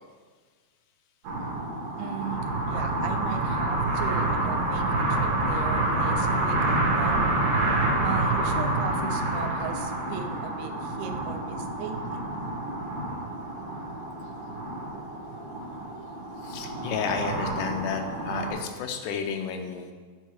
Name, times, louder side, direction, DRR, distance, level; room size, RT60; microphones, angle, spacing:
sound 1, 1.2-18.5, right 2 dB, 65° right, 2.4 m, -28 dB
voice 1, 2.0-7.6 7.9-12.3, right 7 dB, 85° right, 7 dB, 2.0 m, -38 dB
voice 2, 16.4-19.9, left 6 dB, 85° left, 5 dB, 2.1 m, -31 dB
9.1 x 4.4 x 3.1 m, 1.5 s
omnidirectional pair, 3.6 m